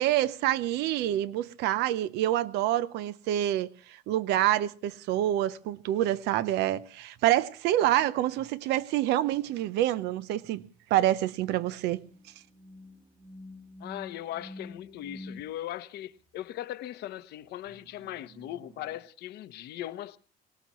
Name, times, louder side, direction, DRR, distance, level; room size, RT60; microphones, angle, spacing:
voice 1, 0.0-10.6 10.9-12.1, right 13 dB, 90° right, 0.7 m, -27 dB
sound 1, 12.0-15.5 17.7-19.0, left 2 dB, 35° right, 1.7 m, -48 dB
voice 2, 13.8-20.2, left 13 dB, 75° left, 0.9 m, -39 dB
23.0 x 18.5 x 3.0 m
cardioid pair, 110°, 17 cm